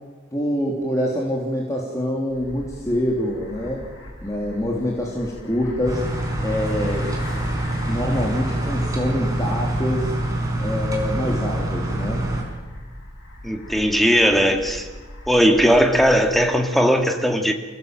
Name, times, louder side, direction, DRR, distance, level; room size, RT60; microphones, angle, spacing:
voice 1, 0.3-3.8 4.2-6.0 6.4-7.1 7.9-10.1 10.6-12.2, left 1 dB, 15° left, -3 dB, 3.4 m, -25 dB
sound 1, 2.3-16.8, left 1 dB, 70° left, 6.7 m, -39 dB
sound 2, 5.8-12.4, right 1 dB, 15° right, 5.2 m, -25 dB
voice 2, 13.4-14.9 15.3-17.5, equal, ahead, 4 dB, 2.3 m, -18 dB
29.0 x 18.0 x 7.9 m, 1.4 s
head